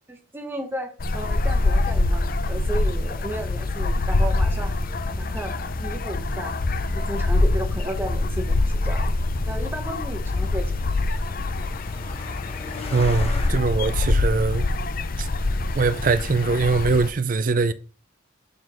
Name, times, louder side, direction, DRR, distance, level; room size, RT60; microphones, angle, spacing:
voice 1, 0.1-4.7 5.2-6.5 6.9-9.1 9.4-10.8, right 1 dB, 10° right, 1.1 m, -34 dB
sound 1, 1.0-17.1, left 2 dB, 45° left, 0.6 m, -24 dB
Truck, 9.7-13.5, left 3 dB, 30° left, 1.4 m, -39 dB
voice 2, 12.9-14.7 15.2-15.3 15.8-17.7, right 4 dB, 45° right, 0.5 m, -22 dB
7.2 x 3.9 x 5.0 m
head